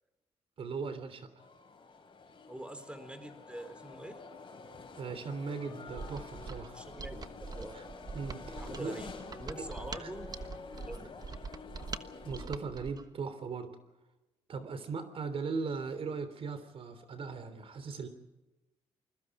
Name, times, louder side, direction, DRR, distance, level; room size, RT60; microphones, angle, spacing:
voice 1, 0.6-1.3 5.0-6.8 7.7-7.8 8.1-8.9 10.0-10.1 12.2-13.7 14.5-18.1, right 5 dB, 60° right, 11 dB, 3.4 m, -38 dB
sound 1, 1.4-12.5, left 4 dB, 45° left, 5.2 m, -49 dB
voice 2, 2.5-4.2 6.7-7.8 8.5-10.3 10.8-11.2, right 1 dB, 10° right, 9 dB, 3.9 m, -45 dB
Mechanisms, 5.9-13.1, right 4 dB, 35° right, 1.3 m, -44 dB
28.5 x 21.5 x 5.0 m, 1.0 s
cardioid pair, 90°, 11 cm